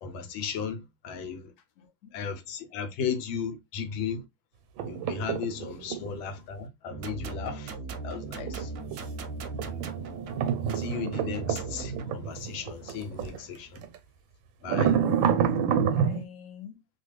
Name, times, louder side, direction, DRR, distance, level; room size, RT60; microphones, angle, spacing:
voice 1, 0.0-1.5 2.1-4.2 4.9-7.7 8.0-8.7 10.7-13.8 14.6-15.0, left 6 dB, 90° left, 1.5 m, -35 dB
voice 2, 1.6-2.2 5.7-5.8 14.9-15.4 15.8-16.8, left 9 dB, 60° left, 0.8 m, -46 dB
sound 1, 4.8-6.2 8.2-13.4 13.8-14.0 14.6-16.2, right 8 dB, 85° right, 1.3 m, -28 dB
sound 2, 6.9-12.1, right 4 dB, 70° right, 0.9 m, -38 dB
3.2 x 2.3 x 3.2 m
omnidirectional pair, 2.1 m